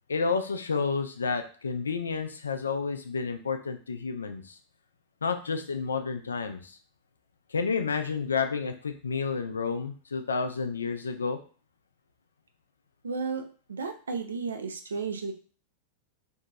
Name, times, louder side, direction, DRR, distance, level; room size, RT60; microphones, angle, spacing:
voice 1, 0.1-4.6 5.2-6.8 7.5-11.4, left 5 dB, 75° left, 7 dB, 0.3 m, -30 dB
voice 2, 13.0-13.4 13.7-15.3, right 4 dB, 75° right, 5 dB, 0.4 m, -33 dB
2.7 x 2.6 x 2.3 m, 0.39 s
figure-of-eight pair, 90°, 0 cm